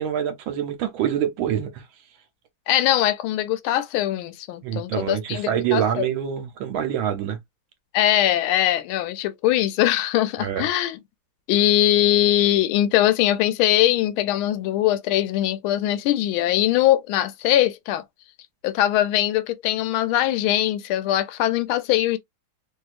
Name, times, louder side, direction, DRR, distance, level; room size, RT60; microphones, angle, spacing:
voice 1, 0.0-1.8 4.6-7.4 10.4-10.7, right 9 dB, 75° right, 1.6 m, -25 dB
voice 2, 2.7-6.1 7.9-11.0 11.5-18.0 18.6-22.2, left 13 dB, 90° left, 1.4 m, -21 dB
3.3 x 2.7 x 2.4 m
omnidirectional pair, 2.2 m